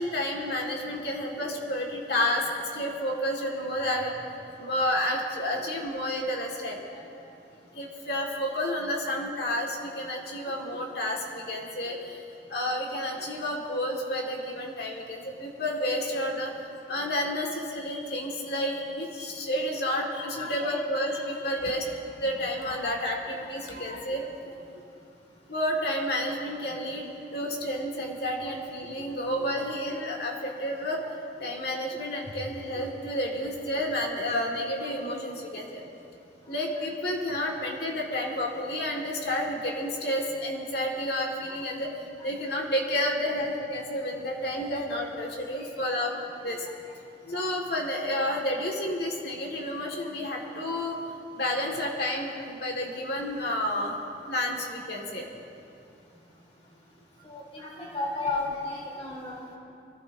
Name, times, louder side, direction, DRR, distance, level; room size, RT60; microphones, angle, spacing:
voice 1, 0.0-2.5 2.7-4.1 4.6-6.8 7.7-12.2 12.5-16.5 16.9-21.9 22.2-24.2 25.5-31.0 31.4-35.8 36.5-41.9 42.2-46.7 47.2-51.0 51.3-53.9 54.3-55.3, left 1 dB, 55° left, 0 dB, 1.9 m, -30 dB
voice 2, 19.8-20.7 22.7-23.1 23.9-24.0 27.5-27.6 44.9-45.0 45.5-45.7 48.1-48.2 57.2-59.6, left 3 dB, 30° left, -4 dB, 3.3 m, -35 dB
23.5 x 15.5 x 2.7 m, 2.6 s
head